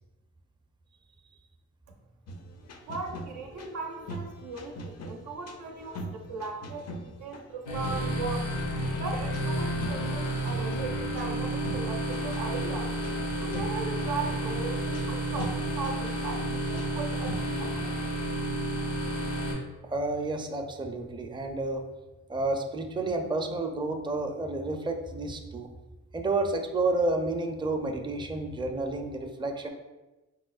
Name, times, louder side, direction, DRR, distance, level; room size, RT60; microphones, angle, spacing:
sound 1, 2.3-17.4, equal, 55° left, 0.5 m, -43 dB
voice 1, 2.9-8.5 9.0-12.9 13.4-18.0, right 4 dB, 85° right, 1 dB, 0.5 m, -38 dB
sound 2, 7.6-19.5, right 1 dB, 80° left, 0.9 m, -31 dB
voice 2, 19.9-21.8 22.3-25.7 26.1-29.7, right 2 dB, 15° right, 4 dB, 0.4 m, -30 dB
4.2 x 2.0 x 2.4 m, 1.1 s
supercardioid pair, 45°, 30 cm